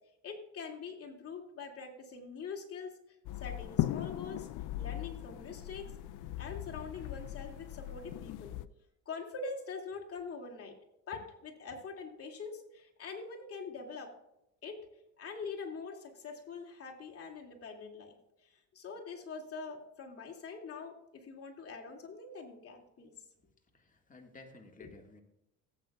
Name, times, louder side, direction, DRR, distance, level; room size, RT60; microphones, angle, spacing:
voice 1, 0.2-3.0 3.4-4.5 4.8-5.9 6.4-8.6 9.1-10.7 11.1-14.1 14.6-14.8 15.2-18.2 18.4-23.1 24.8-24.9, left 4 dB, 40° left, 0 dB, 2.5 m, -44 dB
sound 1, 3.3-8.7, left 14 dB, 65° left, 0.5 m, -38 dB
voice 2, 23.4-25.2, left 2 dB, 25° left, 3 dB, 1.9 m, -55 dB
17.0 x 8.5 x 2.4 m, 0.86 s
supercardioid pair, 85°, 34 cm